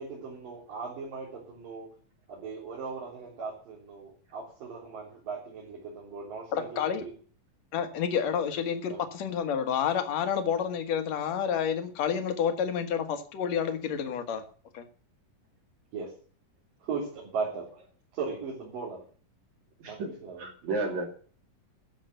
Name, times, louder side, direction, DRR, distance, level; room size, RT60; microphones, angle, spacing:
voice 1, 0.0-1.9 2.3-7.1 8.9-9.0 15.9-16.1 16.8-17.7 18.1-19.0 19.9-20.5, right 5 dB, 75° right, -5 dB, 5.3 m, -38 dB
voice 2, 6.5-7.0 7.7-14.4 14.7-14.9, left 7 dB, 60° left, 7 dB, 2.4 m, -29 dB
voice 3, 19.8-20.1 20.4-21.0, right 3 dB, 60° right, -2 dB, 3.7 m, -32 dB
13.0 x 7.1 x 8.0 m, 0.43 s
omnidirectional pair, 3.9 m